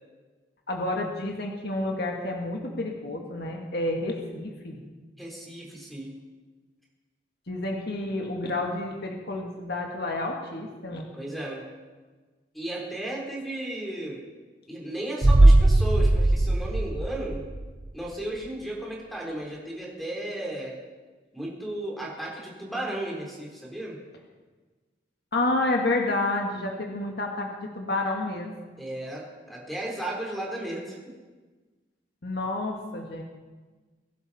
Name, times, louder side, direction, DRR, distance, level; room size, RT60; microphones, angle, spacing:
voice 1, 0.7-4.8 7.5-11.1 25.3-28.5 32.2-33.2, left 2 dB, 60° left, 1 dB, 1.8 m, -29 dB
voice 2, 5.2-6.2 11.1-11.6 12.5-14.3 14.7-17.5 17.9-20.7 21.3-24.0 28.8-31.0, right 1 dB, ahead, -5 dB, 3.7 m, -34 dB
sound 1, 15.2-17.9 18.2-18.3, right 1 dB, 40° right, 0.7 m, -19 dB
22.0 x 11.5 x 4.2 m, 1.3 s
head